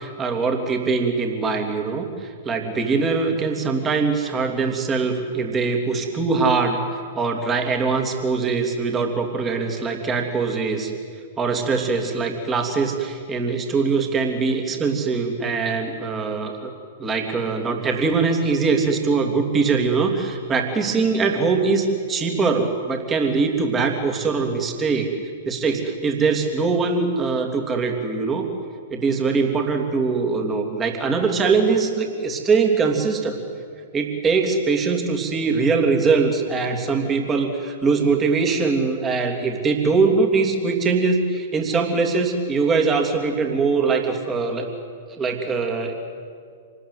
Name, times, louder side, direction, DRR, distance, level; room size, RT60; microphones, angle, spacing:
voice 1, 0.0-10.9 11.4-16.7 17.0-25.1 25.4-28.5 28.9-33.4 33.9-44.7 45.2-45.9, right 4 dB, 20° right, 3 dB, 3.1 m, -22 dB
27.0 x 19.5 x 8.3 m, 2.1 s
figure-of-eight pair, 105°, 0 cm